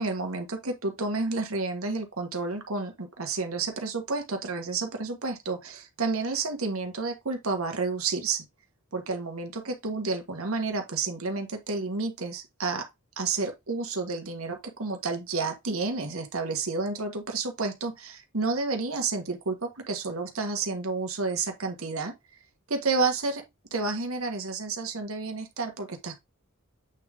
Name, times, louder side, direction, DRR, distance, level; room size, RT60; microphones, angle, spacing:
voice 1, 0.0-8.4 8.9-12.9 13.2-22.1 22.7-23.4 23.7-26.2, right 3 dB, 90° right, 1.5 m, -30 dB
8.2 x 3.7 x 3.5 m
head